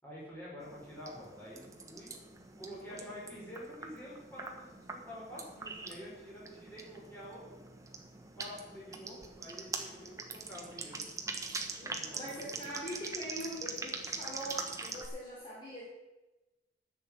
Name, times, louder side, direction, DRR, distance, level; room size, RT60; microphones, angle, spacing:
voice 1, 0.0-2.2 2.6-7.4 8.4-11.0 11.9-12.6, equal, 10° left, -7 dB, 5.3 m, -48 dB
sound 1, 0.6-15.1, right 3 dB, 20° right, 1.2 m, -43 dB
voice 2, 11.8-15.9, equal, 25° left, -7 dB, 3.2 m, -43 dB
11.0 x 6.6 x 8.9 m, 1.1 s
head